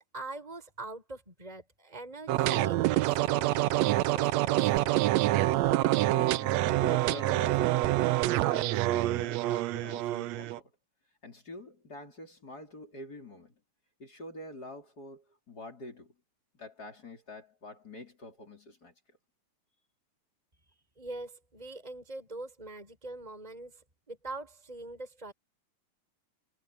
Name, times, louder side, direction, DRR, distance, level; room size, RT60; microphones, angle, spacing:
voice 1, 0.0-5.1 21.0-25.3, right 2 dB, 10° right, 6.0 m, -43 dB
sound 1, 2.3-10.6, right 16 dB, 75° right, 1.6 m, -26 dB
voice 2, 6.1-8.0 8.3-10.7 11.2-13.5 14.0-16.1 16.5-18.9, left 1 dB, 30° left, 4.1 m, -46 dB
omnidirectional pair, 3.6 m